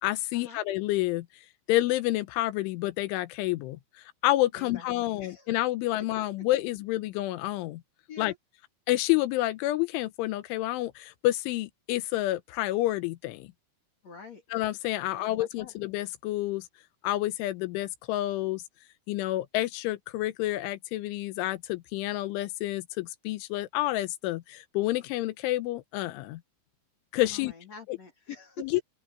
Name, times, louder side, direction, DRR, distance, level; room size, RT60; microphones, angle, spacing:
voice 1, 0.0-1.3 1.7-3.8 4.2-7.8 8.2-8.3 8.9-13.5 14.5-16.7 17.0-18.6 19.1-26.4 27.1-27.5 27.9-28.0 28.6-28.8, left 16 dB, 85° left, 3.4 m, -29 dB
voice 2, 4.5-4.9 5.2-5.5 8.1-8.4 14.0-14.4 15.0-15.7 27.3-28.8, left 4 dB, 45° left, 2.7 m, -45 dB
open air
omnidirectional pair, 5.5 m